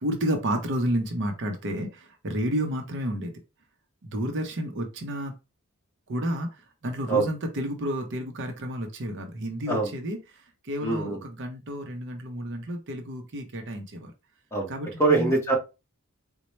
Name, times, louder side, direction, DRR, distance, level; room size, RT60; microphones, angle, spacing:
voice 1, 0.0-3.3 4.0-5.3 6.1-14.1 14.7-15.3, equal, 55° right, 5 dB, 0.7 m, -31 dB
voice 2, 10.8-11.2 14.5-14.7 15.0-15.6, right 3 dB, 10° left, -1 dB, 1.1 m, -23 dB
4.1 x 2.2 x 3.1 m, 0.27 s
head